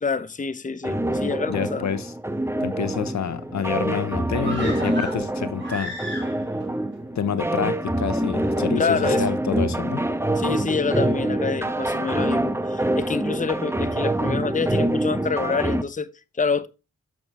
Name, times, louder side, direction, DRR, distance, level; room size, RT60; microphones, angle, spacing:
voice 1, 0.0-1.9 8.8-9.3 10.4-16.1 16.4-16.7, left 5 dB, 25° left, 0.8 m, -27 dB
sound 1, 0.8-15.8, right 1 dB, 10° right, 1.0 m, -25 dB
voice 2, 1.5-2.1 2.6-5.9 7.1-10.0, left 7 dB, 65° left, 0.8 m, -28 dB
sound 2, 4.4-6.6 6.9-7.0, right 1 dB, 40° right, 3.6 m, -34 dB
7.0 x 6.6 x 3.0 m
supercardioid pair, 40°, 30 cm